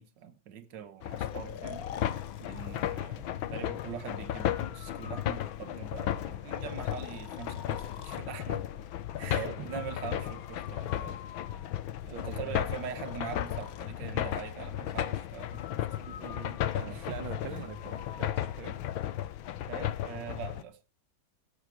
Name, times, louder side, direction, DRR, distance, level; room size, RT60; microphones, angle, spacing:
voice 1, 0.0-1.9 2.4-8.6 9.2-11.2 12.1-15.8 16.9-17.7 19.7-20.8, right 8 dB, 65° right, 1.8 m, -43 dB
sound 1, 1.0-20.6, left 12 dB, 85° left, 1.7 m, -35 dB
Breathing, 1.2-3.0 4.3-6.0 6.5-8.3 9.7-11.9 12.7-13.9 15.5-18.4, left 8 dB, 55° left, 1.2 m, -48 dB
voice 2, 9.3-9.9 12.1-12.6 16.0-18.8, right 11 dB, 80° right, 1.6 m, -43 dB
16.5 x 8.8 x 4.9 m
omnidirectional pair, 2.2 m